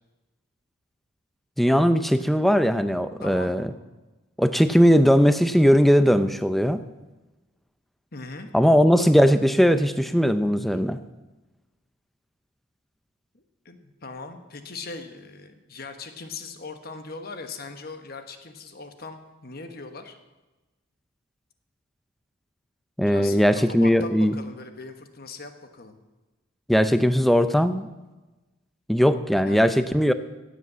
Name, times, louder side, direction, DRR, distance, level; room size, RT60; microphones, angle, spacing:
voice 1, 1.6-3.7 4.4-6.8 8.5-11.0 23.0-24.4 26.7-27.9 28.9-30.1, equal, ahead, 11 dB, 0.5 m, -19 dB
voice 2, 3.2-3.5 8.1-8.5 13.3-20.2 23.0-26.0 29.3-29.8, left 3 dB, 45° left, 7 dB, 1.3 m, -40 dB
15.5 x 8.2 x 7.4 m, 1.1 s
head